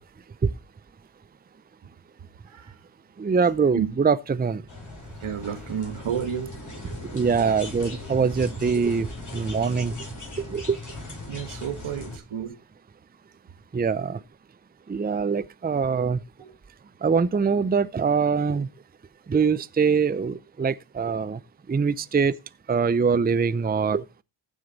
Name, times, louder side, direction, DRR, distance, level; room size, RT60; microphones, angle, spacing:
voice 1, 3.2-4.6 7.1-10.0 10.4-10.8 13.7-14.2 14.9-16.2 17.0-18.7 19.3-21.4 21.7-22.3 22.7-24.0, right 5 dB, 20° right, 0.5 m, -23 dB
sound 1, 4.7-12.2, left 2 dB, 40° left, 5.4 m, -39 dB
voice 2, 5.2-6.5 11.3-12.5 16.4-16.5, right 8 dB, 85° right, 1.4 m, -31 dB
15.0 x 6.4 x 4.0 m
cardioid pair, 70°, 47 cm